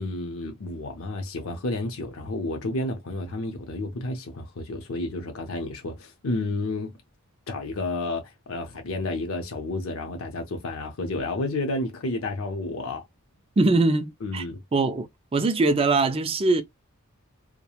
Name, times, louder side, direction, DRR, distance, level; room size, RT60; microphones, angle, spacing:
voice 1, 0.0-7.0 7.5-13.0 14.2-14.6, left 2 dB, 65° left, 0.6 m, -31 dB
voice 2, 13.6-14.4 14.7-15.1 15.3-16.6, right 3 dB, 25° right, 0.3 m, -22 dB
3.0 x 2.1 x 2.3 m
head